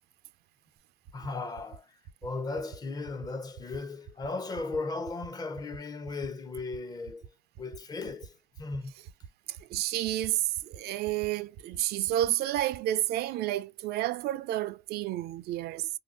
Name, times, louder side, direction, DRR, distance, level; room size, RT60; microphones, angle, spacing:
sound 1, 0.8-0.9 1.0-1.3 1.5-1.8 2.0-2.3 2.5-2.8 3.0-3.3 3.5-3.8 4.0-4.3 4.5-4.8 5.0-5.3 5.5-5.8 6.0-6.3 6.5-6.8 7.0-7.3 7.5-7.8 8.0-8.3 8.5-8.8 9.0-9.3 9.5-9.8 10.0-10.3 10.5-10.8 11.0-11.3 11.5-11.8 12.0-12.3 12.5-12.8, right 9 dB, 85° right, 0.8 m, -46 dB
voice 1, 1.1-1.9 2.2-7.3 7.6-8.3 8.6-8.9, left 3 dB, 25° left, 0.5 m, -36 dB
voice 2, 9.7-15.9, right 13 dB, 70° right, 0.4 m, -30 dB
2.7 x 2.2 x 3.6 m
cardioid pair, 110°, 17 cm